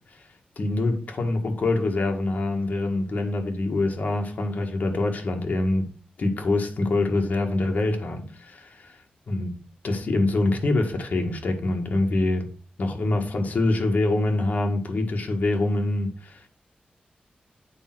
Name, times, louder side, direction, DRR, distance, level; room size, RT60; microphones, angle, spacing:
voice 1, 0.6-5.9 6.2-9.0 9.3-9.6 9.8-12.5 12.8-16.5, left 2 dB, 60° left, 1.8 m, -25 dB
8.7 x 4.4 x 6.1 m
wide cardioid pair, 145°, 3 cm